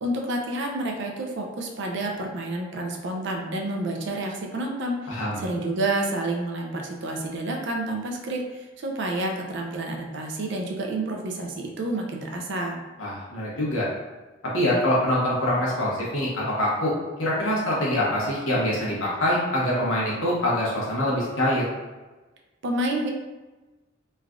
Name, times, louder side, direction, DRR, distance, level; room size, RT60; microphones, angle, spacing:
voice 1, 0.0-12.8 22.6-23.1, right 1 dB, 60° right, 1 dB, 0.4 m, -29 dB
voice 2, 5.1-5.4 13.0-13.9 14.5-16.9 17.2-21.7, left 1 dB, 75° left, -6 dB, 0.9 m, -24 dB
3.2 x 2.3 x 2.4 m, 1.2 s
head